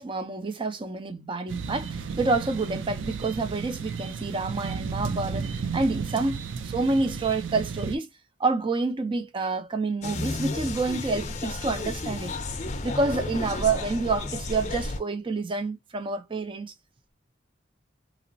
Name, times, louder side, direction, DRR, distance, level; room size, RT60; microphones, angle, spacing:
voice 1, 0.0-8.1 8.4-12.3 12.8-16.7, right 3 dB, 25° right, 0.5 m, -28 dB
sound 1, 1.5-8.0, right 5 dB, 85° right, 0.4 m, -33 dB
sound 2, 10.0-15.0, left 2 dB, 40° left, 0.5 m, -32 dB
2.9 x 2.0 x 2.6 m
head